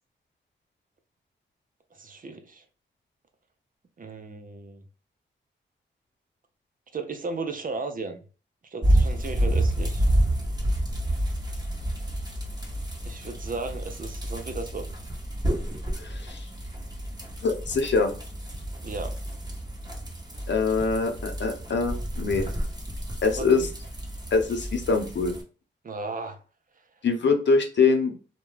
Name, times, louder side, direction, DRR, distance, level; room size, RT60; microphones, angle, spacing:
voice 1, 1.9-2.6 4.0-4.8 6.9-8.2 8.7-10.0 13.0-14.9 18.8-19.2 23.4-23.7 25.8-26.4, right 3 dB, 45° right, 0.5 m, -35 dB
sound 1, 8.8-25.4, right 1 dB, 20° right, 1.0 m, -29 dB
voice 2, 16.0-16.4 17.4-18.1 20.5-22.5 23.2-23.6 24.3-25.4 27.0-28.1, left 4 dB, 70° left, 0.7 m, -23 dB
2.3 x 2.2 x 3.1 m
cardioid pair, 55°, 20 cm